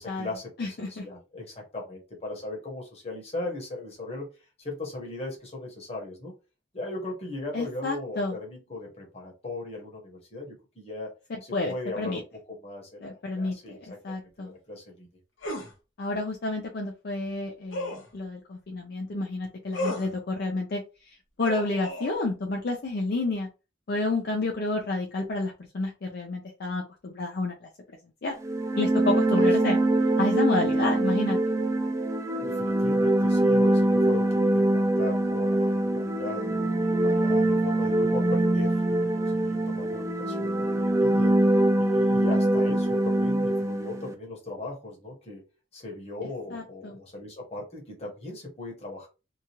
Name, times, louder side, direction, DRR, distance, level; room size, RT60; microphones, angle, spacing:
voice 1, 0.0-4.3 4.6-6.3 6.7-11.1 11.7-12.2 12.6-13.8 14.4-15.1 29.4-29.5 32.4-36.5 37.0-41.4 41.8-45.4 45.7-49.1, left 2 dB, 30° left, -1 dB, 1.1 m, -38 dB
voice 2, 0.6-1.0 7.5-8.4 11.3-12.2 13.0-13.8 14.0-14.5 16.0-23.5 23.9-28.4 28.7-29.8 30.2-31.4 46.2-47.0, left 2 dB, 55° left, 1 dB, 0.5 m, -30 dB
sound 1, 15.4-15.7 17.7-18.1 19.7-20.1 21.4-22.1, left 1 dB, 75° left, 0.9 m, -33 dB
sound 2, 28.4-44.1, right 1 dB, 15° right, 0.3 m, -23 dB
2.8 x 2.3 x 2.9 m, 0.30 s
head